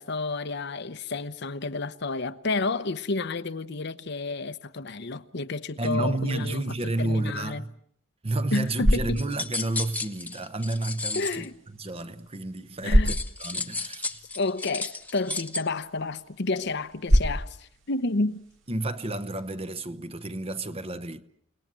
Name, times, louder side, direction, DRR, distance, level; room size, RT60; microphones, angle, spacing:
voice 1, 0.0-6.6 7.0-7.6 8.5-9.2 11.1-11.5 12.8-13.1 14.4-18.4, left 3 dB, 60° left, 0.9 m, -30 dB
voice 2, 5.8-7.7 8.2-11.5 11.8-14.2 18.7-21.2, right 2 dB, 30° right, 1.0 m, -31 dB
sound 1, 8.4-19.5, equal, 75° right, 2.6 m, -30 dB
sound 2, 9.2-11.4 13.0-15.6, left 3 dB, 10° left, 1.1 m, -33 dB
29.5 x 19.0 x 7.6 m
head